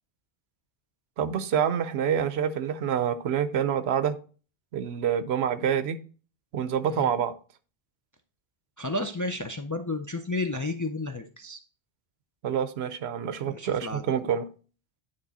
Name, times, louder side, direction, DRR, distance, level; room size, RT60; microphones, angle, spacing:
voice 1, 1.2-4.2 4.7-6.0 6.5-7.3 12.4-14.5, right 8 dB, 85° right, 13 dB, 0.9 m, -27 dB
voice 2, 8.8-11.6 13.5-14.1, left 2 dB, 30° left, 5 dB, 0.3 m, -32 dB
9.5 x 3.2 x 4.1 m, 0.38 s
omnidirectional pair, 1.0 m